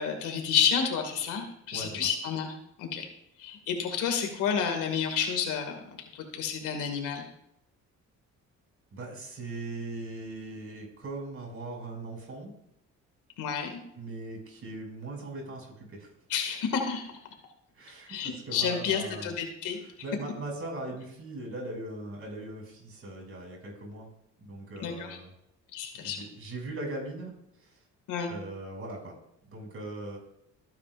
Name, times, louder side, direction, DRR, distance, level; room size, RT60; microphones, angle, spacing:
voice 1, 0.0-3.1 3.4-5.8 6.1-7.2 13.4-13.8 16.3-17.0 18.1-19.8 24.8-25.2 25.7-26.2 28.1-28.3, left 7 dB, 90° left, 4 dB, 2.2 m, -30 dB
voice 2, 1.7-2.1 8.9-12.5 13.9-16.1 17.7-19.3 19.8-24.1 24.4-25.3 26.0-27.3 27.6-27.8 28.3-29.1 29.5-30.2, right 2 dB, 45° right, 0 dB, 6.2 m, -40 dB
26.0 x 9.6 x 2.6 m, 0.78 s
cardioid pair, 90°, 30 cm